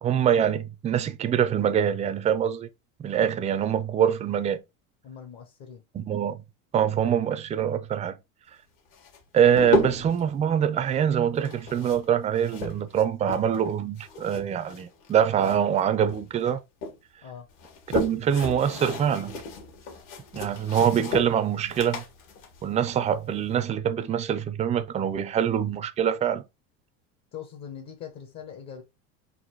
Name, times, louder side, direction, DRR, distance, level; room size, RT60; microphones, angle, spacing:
voice 1, 0.0-2.7 3.0-4.6 5.9-6.4 6.7-8.2 9.3-16.6 17.9-19.4 20.3-22.0 22.6-26.4, right 9 dB, 20° right, 0.4 m, -24 dB
voice 2, 5.0-5.8 17.2-17.5 27.3-28.8, left 8 dB, 50° left, 1.1 m, -41 dB
sound 1, 8.9-10.2 11.3-13.7 14.0-15.8 16.1-17.0 17.5-23.6, left 2 dB, 65° left, 1.9 m, -33 dB
4.1 x 2.5 x 4.4 m
supercardioid pair, 125°, 35 cm